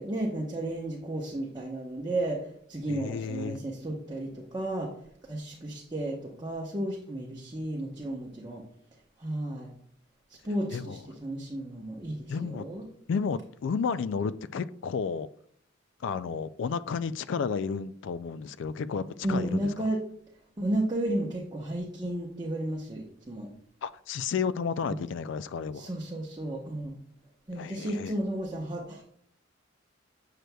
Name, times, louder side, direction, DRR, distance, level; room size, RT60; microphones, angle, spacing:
voice 1, 0.0-2.4 2.7-4.9 5.3-8.6 9.2-9.7 10.4-12.8 19.2-20.0 20.6-23.5 24.8-25.0 25.7-26.9 27.5-29.0, right 1 dB, 20° right, -2 dB, 0.9 m, -33 dB
voice 2, 2.9-3.6 10.7-11.0 12.3-12.6 13.1-15.3 16.0-19.7 23.8-25.9 27.5-28.1, left 5 dB, 65° left, 15 dB, 0.3 m, -32 dB
7.6 x 6.6 x 2.2 m, 0.64 s
head